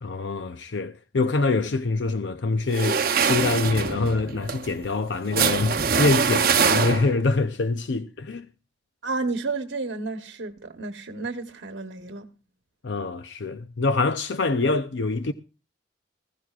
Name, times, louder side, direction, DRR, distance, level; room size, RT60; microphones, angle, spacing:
voice 1, 0.0-8.5 12.8-15.3, left 3 dB, 75° left, 0.6 m, -25 dB
sound 1, 2.7-7.3, right 6 dB, 50° right, 0.8 m, -24 dB
voice 2, 9.0-12.3, right 3 dB, 75° right, 1.1 m, -31 dB
20.0 x 14.5 x 2.4 m
head